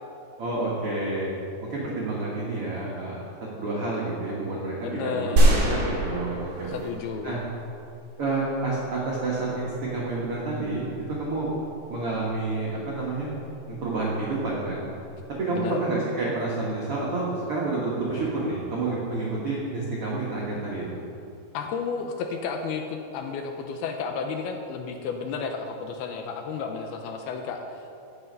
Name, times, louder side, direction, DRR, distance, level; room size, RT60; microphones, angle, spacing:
voice 1, 0.4-1.3 1.7-3.2 3.5-6.7 7.2-7.4 8.2-11.5 11.9-13.3 13.7-14.9 15.4-21.0, right 2 dB, 75° right, -5 dB, 1.3 m, -29 dB
voice 2, 4.8-5.7 6.6-7.4 15.5-15.8 21.5-27.8, left 5 dB, 80° left, 4 dB, 2.4 m, -32 dB
sound 1, 5.4-7.6, right 1 dB, 55° right, 3.8 m, -23 dB
15.5 x 5.7 x 5.4 m, 2.6 s
omnidirectional pair, 4.8 m